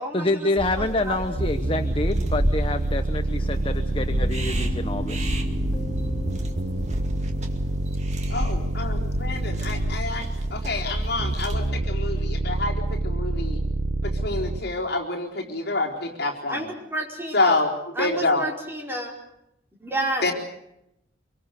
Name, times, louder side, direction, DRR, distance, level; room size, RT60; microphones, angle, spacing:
voice 1, 0.1-5.3, left 2 dB, 25° left, 8 dB, 1.0 m, -27 dB
sound 1, 0.6-11.7, equal, 35° right, 2.2 m, -31 dB
voice 2, 0.8-1.4 16.5-17.3 17.9-19.1 19.8-20.3, right 1 dB, 10° right, -1 dB, 5.0 m, -30 dB
sound 2, 1.4-14.6, right 2 dB, 70° right, 1.1 m, -28 dB
Piano, 3.4-10.9, left 1 dB, 10° left, 3.6 m, -38 dB
voice 3, 8.3-13.6 14.0-16.7 17.3-17.7 18.0-18.4 20.2-20.3, left 2 dB, 55° left, -1 dB, 4.2 m, -27 dB
25.5 x 24.0 x 6.7 m, 0.80 s
head